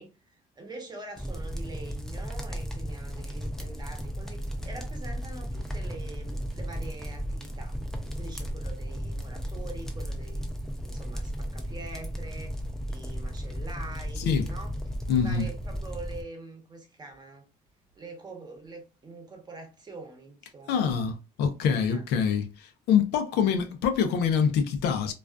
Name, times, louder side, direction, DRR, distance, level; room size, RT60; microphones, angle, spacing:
voice 1, 0.0-7.8 8.1-10.4 10.8-12.5 12.9-14.7 15.1-17.4 18.0-21.1 21.9-22.0, right 3 dB, 25° right, 0.8 m, -44 dB
sound 1, 1.2-16.2, equal, 5° left, 0.5 m, -35 dB
voice 2, 15.1-15.5 20.7-25.1, left 7 dB, 80° left, 0.5 m, -25 dB
2.4 x 2.3 x 2.3 m
cardioid pair, 110°, 17 cm